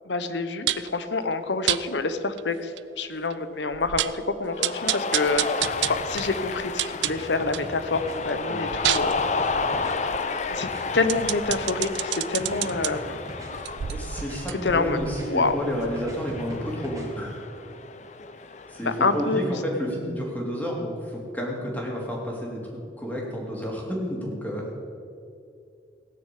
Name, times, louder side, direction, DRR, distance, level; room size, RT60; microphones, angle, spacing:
voice 1, 0.1-2.7 3.0-9.3 10.5-10.7 10.9-13.2 14.6-15.0 15.2-15.6 18.8-19.5, left 3 dB, 85° left, 11 dB, 0.9 m, -27 dB
sound 1, 0.7-1.0 1.7-1.8 2.4-2.5 2.8-2.9 3.3-3.4 3.7-4.2 4.6-7.7 8.1-12.9 13.5-16.2 16.5-16.6, right 13 dB, 85° right, 0.4 m, -30 dB
Cheering, 4.5-19.3, left 4 dB, 40° left, 0.6 m, -32 dB
sound 2, 5.4-6.4 7.1-8.2 8.8-10.0 10.6-11.7 12.4-13.5 14.2-15.3 16.0-17.1, equal, 20° right, 2.2 m, -40 dB
voice 2, 13.9-17.3 18.7-22.6 23.0-24.7, equal, 10° left, -2 dB, 2.6 m, -30 dB
17.0 x 6.6 x 8.4 m, 2.5 s
head